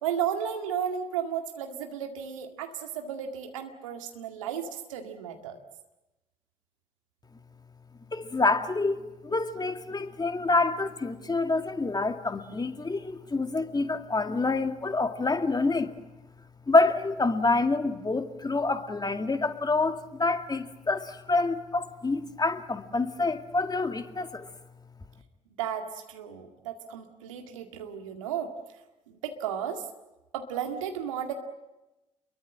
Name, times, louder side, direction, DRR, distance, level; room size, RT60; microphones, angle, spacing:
voice 1, 0.0-5.6 25.6-28.5 29.1-29.9 30.3-31.3, right 8 dB, 80° right, 4 dB, 2.0 m, -34 dB
voice 2, 8.1-15.9 16.7-24.5, left 3 dB, 25° left, 7 dB, 2.4 m, -27 dB
29.0 x 22.5 x 7.6 m, 1.0 s
figure-of-eight pair, 45°, 16 cm